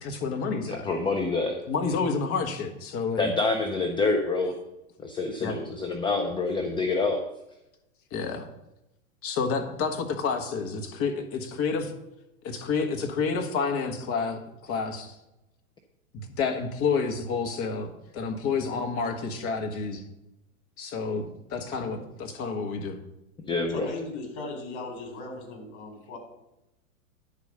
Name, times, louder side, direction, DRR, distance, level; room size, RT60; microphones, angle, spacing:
voice 1, 0.0-0.9 1.6-3.3 5.4-5.6 8.1-8.5 9.2-11.9 12.4-15.2 16.1-20.0 20.8-21.2 21.5-23.0, left 5 dB, 30° left, 5 dB, 1.5 m, -29 dB
voice 2, 0.6-1.6 3.2-4.6 5.0-7.2 10.4-10.5 12.7-13.1 13.5-13.7 14.1-14.3 14.7-15.0 16.4-16.5 16.9-17.0 17.3-17.8 18.1-19.6 20.8-21.0 21.5-21.9 22.4-22.5 23.5-23.9, left 3 dB, 10° left, 4 dB, 0.6 m, -29 dB
voice 3, 23.7-26.2, left 3 dB, 50° left, 3 dB, 4.0 m, -37 dB
10.5 x 4.9 x 6.6 m, 0.90 s
hypercardioid pair, 120°, 43 cm